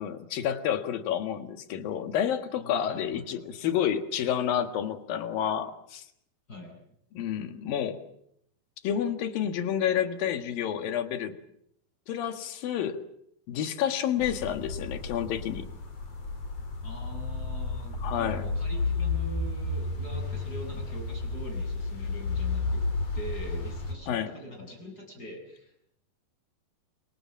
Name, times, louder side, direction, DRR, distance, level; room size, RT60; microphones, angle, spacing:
voice 1, 0.0-6.0 7.1-8.0 8.8-11.3 12.1-13.0 13.5-15.7 18.0-18.4 24.1-24.3, left 9 dB, 75° left, 9 dB, 3.4 m, -29 dB
voice 2, 2.5-3.5 6.5-6.8 16.8-22.8 23.1-25.8, equal, 25° left, 1 dB, 8.0 m, -43 dB
sound 1, 14.2-23.9, left 3 dB, 40° left, 5.2 m, -32 dB
27.5 x 23.5 x 7.4 m, 0.74 s
omnidirectional pair, 4.3 m